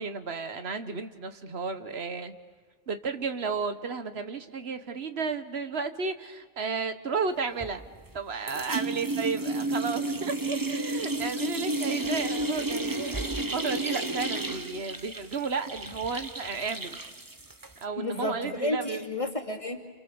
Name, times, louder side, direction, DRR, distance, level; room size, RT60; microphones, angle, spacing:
voice 1, 0.0-2.3 2.9-7.9 8.1-17.0 17.8-19.0, right 5 dB, 85° right, 9 dB, 1.6 m, -33 dB
sound 1, 7.6-8.2 8.5-17.8, right 2 dB, 20° right, 1.1 m, -32 dB
voice 2, 18.0-19.9, left 2 dB, 35° left, 1 dB, 2.8 m, -32 dB
29.0 x 29.0 x 7.1 m, 1.5 s
omnidirectional pair, 1.0 m